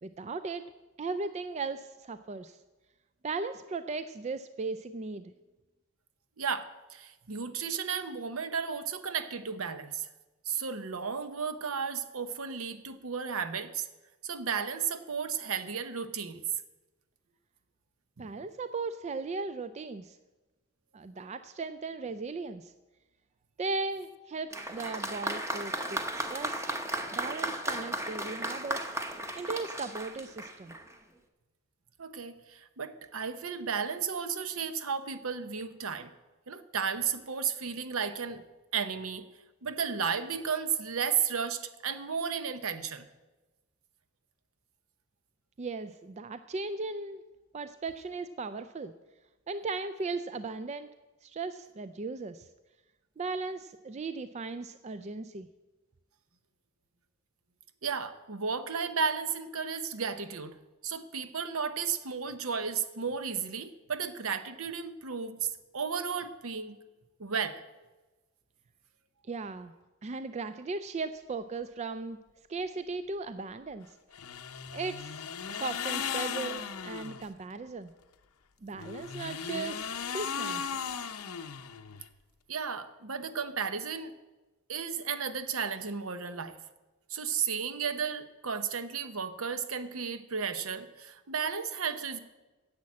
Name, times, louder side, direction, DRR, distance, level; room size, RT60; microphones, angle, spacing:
voice 1, 0.0-0.7 1.0-2.6 3.2-5.3 18.2-20.2 20.9-22.7 23.6-26.7 27.1-28.9 29.4-30.7 45.6-47.2 47.5-48.9 49.5-50.9 51.2-52.5 53.2-55.5 69.3-69.7 70.0-72.2 72.5-73.9 74.7-75.2 75.5-77.9 78.6-80.7, right 3 dB, 30° right, 11 dB, 0.3 m, -37 dB
voice 2, 6.4-10.1 10.5-13.9 14.2-16.4 18.2-18.3 32.0-36.1 36.5-38.4 38.7-39.3 39.6-43.1 57.8-60.6 60.8-66.8 67.2-67.6 82.5-84.1 84.7-86.6 87.1-92.2, right 6 dB, 70° right, 11 dB, 0.8 m, -34 dB
Applause, 24.5-31.0, right 1 dB, 15° right, 0.8 m, -35 dB
sound 1, 74.1-77.3 78.7-82.1, left 7 dB, 80° left, 0.7 m, -37 dB
10.5 x 7.6 x 8.4 m, 1.2 s
head